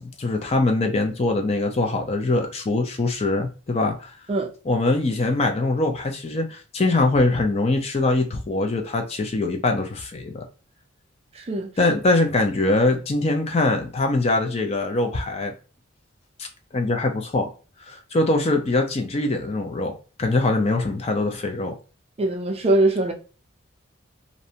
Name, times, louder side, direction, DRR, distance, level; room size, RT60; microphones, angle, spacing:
voice 1, 0.0-4.1 4.7-10.4 11.8-15.5 16.4-16.5 16.7-17.5 17.9-21.7, left 2 dB, 30° left, 0.4 m, -23 dB
voice 2, 11.4-11.7 22.2-23.1, right 2 dB, 30° right, 0.4 m, -22 dB
2.6 x 2.1 x 2.6 m
head